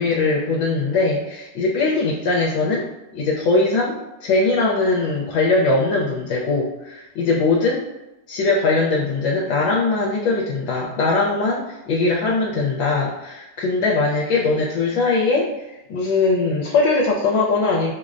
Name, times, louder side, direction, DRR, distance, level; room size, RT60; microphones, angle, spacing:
voice 1, 0.0-2.8 3.1-7.8 8.3-17.9, left 3 dB, 80° left, -3 dB, 1.3 m, -21 dB
6.0 x 2.0 x 2.4 m, 0.97 s
omnidirectional pair, 2.2 m